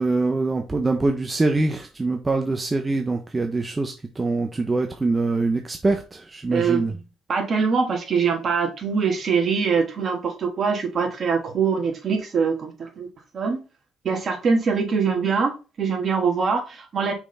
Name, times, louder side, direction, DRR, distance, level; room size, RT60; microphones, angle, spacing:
voice 1, 0.0-6.9, right 3 dB, 25° right, 1.1 m, -24 dB
voice 2, 6.5-6.8 7.3-13.1 13.3-13.6 14.0-17.1, right 5 dB, 50° right, 2.8 m, -23 dB
5.9 x 4.3 x 5.8 m
cardioid pair, 90°, 0 cm